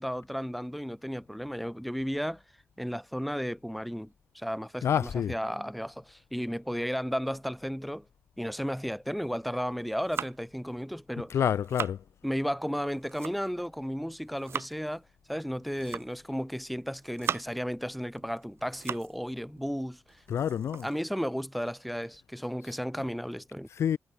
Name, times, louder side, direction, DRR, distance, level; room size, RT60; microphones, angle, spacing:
voice 1, 0.0-2.4 2.8-8.1 8.4-11.4 12.2-15.0 15.3-20.2 20.8-23.7, equal, ahead, 3.9 m, -34 dB
voice 2, 4.8-5.3 11.3-12.0 20.3-20.9 23.7-24.0, left 9 dB, 75° left, 0.7 m, -28 dB
sound 1, 9.7-10.6 11.3-12.0 12.8-13.7 14.1-14.8 15.6-16.3 16.8-17.7 18.2-19.2 19.6-19.7 20.1-21.9, right 7 dB, 65° right, 4.2 m, -39 dB
wide cardioid pair, 120°, 5 cm